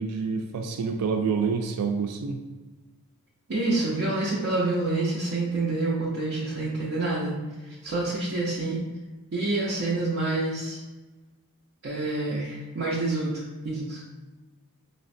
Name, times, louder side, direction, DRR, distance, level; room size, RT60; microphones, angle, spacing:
voice 1, 0.0-2.4, right 5 dB, 85° right, 4 dB, 0.3 m, -27 dB
voice 2, 3.5-7.3 7.7-8.8 9.3-10.8 11.8-14.0, right 2 dB, 60° right, -7 dB, 0.6 m, -27 dB
4.9 x 2.1 x 2.6 m, 1.2 s
head